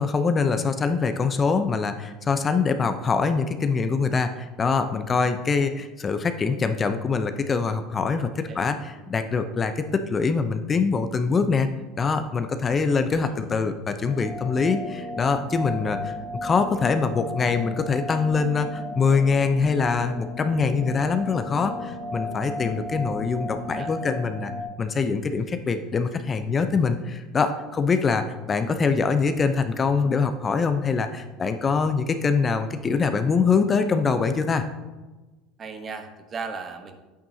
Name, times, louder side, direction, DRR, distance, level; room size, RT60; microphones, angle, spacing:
voice 1, 0.0-11.7 12.0-16.1 16.4-24.5 24.8-34.6, left 5 dB, 30° left, 9 dB, 0.6 m, -24 dB
sound 1, 14.0-24.6, left 2 dB, 60° left, 1.0 m, -35 dB
voice 2, 23.6-23.9 35.6-37.0, right 4 dB, 35° right, 7 dB, 1.0 m, -36 dB
8.8 x 8.5 x 2.8 m, 1.2 s
hypercardioid pair, 80°, 0 cm